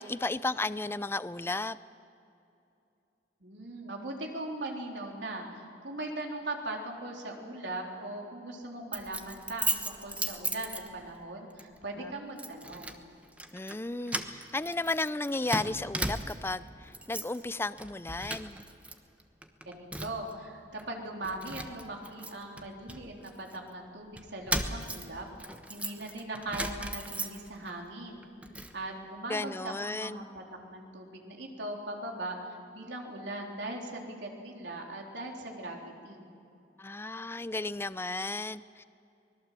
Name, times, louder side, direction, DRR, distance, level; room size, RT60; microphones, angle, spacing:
voice 1, 0.0-1.8 12.0-12.1 13.5-18.6 29.3-30.3 36.8-38.8, left 2 dB, 15° left, 15 dB, 0.5 m, -34 dB
voice 2, 3.4-13.0 19.7-25.3 25.7-28.2 28.7-36.3, right 2 dB, 85° right, 0 dB, 3.7 m, -40 dB
Keys jangling, 8.9-11.2 11.6-11.8 12.4-13.0 13.3-13.8 14.1-16.6 16.9-17.4 17.7-18.9 19.2-20.3 20.8-20.9 21.2-23.6 24.2-27.7 28.1-28.7, right 2 dB, 10° right, 1.1 m, -37 dB
24.5 x 20.5 x 7.6 m, 2.7 s
head